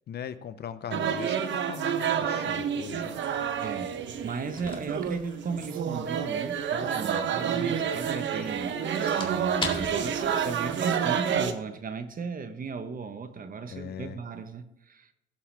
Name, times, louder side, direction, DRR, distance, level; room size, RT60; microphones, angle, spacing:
voice 1, 0.1-3.1 13.7-14.2, left 8 dB, 55° left, 0.6 m, -39 dB
sound 1, 0.9-11.5, right 8 dB, 70° right, 0.9 m, -29 dB
sound 2, 2.5-11.5, left 3 dB, 25° left, 1.9 m, -43 dB
voice 2, 3.6-8.8 9.2-15.1, right 5 dB, 45° right, 1.0 m, -36 dB
16.5 x 5.6 x 3.3 m
cardioid pair, 90°, 20 cm